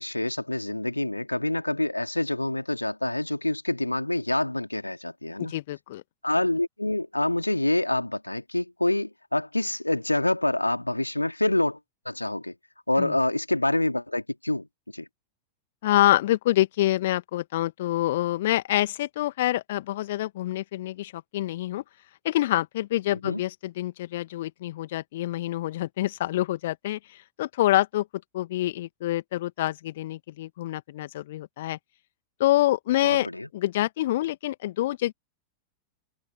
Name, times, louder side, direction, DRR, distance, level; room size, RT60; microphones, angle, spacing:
voice 1, 0.0-5.5 6.2-11.8 12.0-12.5 12.9-14.7 14.9-15.1 23.2-23.4 33.0-33.5, left 1 dB, 85° left, 2.7 m, -26 dB
voice 2, 5.4-6.0 13.0-13.2 15.8-21.8 22.2-28.1 28.3-31.8 32.4-33.3 33.5-35.1, left 15 dB, 55° left, 2.0 m, -26 dB
figure-of-eight pair, 90°, 0 cm